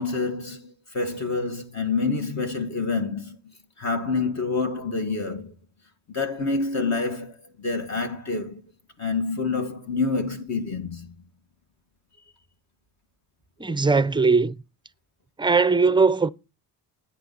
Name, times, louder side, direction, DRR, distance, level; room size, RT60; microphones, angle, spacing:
voice 1, 0.0-5.5 6.1-8.6 9.0-11.1, left 4 dB, 40° left, 2.1 m, -27 dB
voice 2, 13.6-14.5 15.4-16.3, right 4 dB, 10° right, 0.5 m, -19 dB
10.0 x 9.2 x 4.2 m
supercardioid pair, 80°, 40 cm